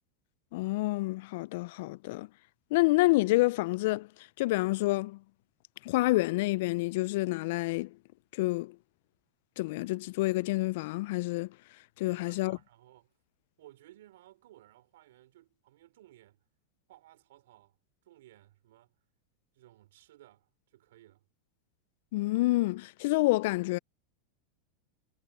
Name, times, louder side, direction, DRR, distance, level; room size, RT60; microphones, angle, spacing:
voice 1, 0.5-2.3 2.7-5.2 5.8-8.0 8.3-8.8 9.6-11.6 12.0-12.6 22.1-23.8, left 20 dB, 65° left, 0.3 m, -28 dB
voice 2, 12.0-13.1 13.6-16.4 16.9-17.8 18.0-18.9 19.5-21.2, right 15 dB, 75° right, 5.0 m, -58 dB
hypercardioid pair, 110°, 0 cm